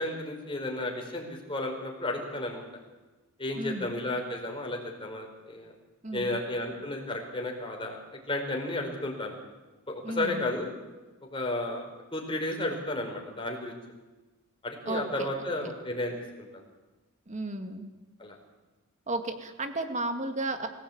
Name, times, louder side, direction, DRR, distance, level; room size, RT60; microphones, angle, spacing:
voice 1, 0.0-2.7 3.4-5.7 6.1-8.0 8.3-9.3 9.9-10.7 11.3-11.9 12.1-13.7 14.6-16.6 18.2-18.4, left 1 dB, 25° left, 1 dB, 5.1 m, -33 dB
voice 2, 3.5-4.0 6.0-6.4 10.0-10.4 14.9-15.3 17.3-17.9 19.1-20.7, right 2 dB, 30° right, 6 dB, 2.2 m, -33 dB
25.5 x 17.5 x 8.8 m, 1.2 s
head